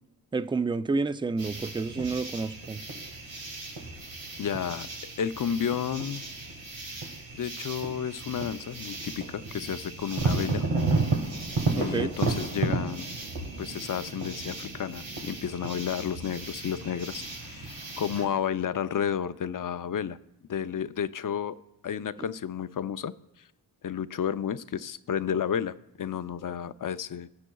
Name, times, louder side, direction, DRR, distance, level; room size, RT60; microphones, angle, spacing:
voice 1, 0.3-2.8 11.8-12.1, right 4 dB, 10° right, 0.4 m, -29 dB
sound 1, 1.4-18.3, right 3 dB, 80° right, 1.5 m, -33 dB
voice 2, 4.4-4.9 5.2-6.2 7.4-10.6 11.7-13.1 13.6-20.2 20.5-21.6 21.8-23.1 23.8-27.3, left 8 dB, 45° left, 0.6 m, -31 dB
18.5 x 7.2 x 2.3 m
cardioid pair, 45°, 44 cm